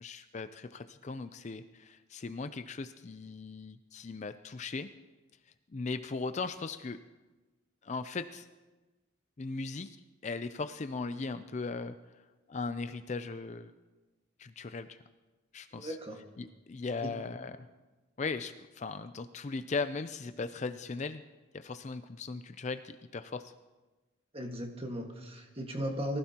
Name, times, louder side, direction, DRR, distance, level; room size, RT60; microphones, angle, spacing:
voice 1, 0.0-4.9 5.7-7.0 7.8-8.5 9.4-10.0 10.2-12.0 12.5-13.7 14.4-15.0 15.5-16.0 16.4-17.5 18.2-21.2 21.5-23.5, left 4 dB, 35° left, 10 dB, 0.4 m, -38 dB
voice 2, 15.7-16.2 17.0-17.1 24.3-26.2, equal, 30° right, 2 dB, 1.6 m, -37 dB
23.5 x 15.5 x 2.9 m, 1.2 s
head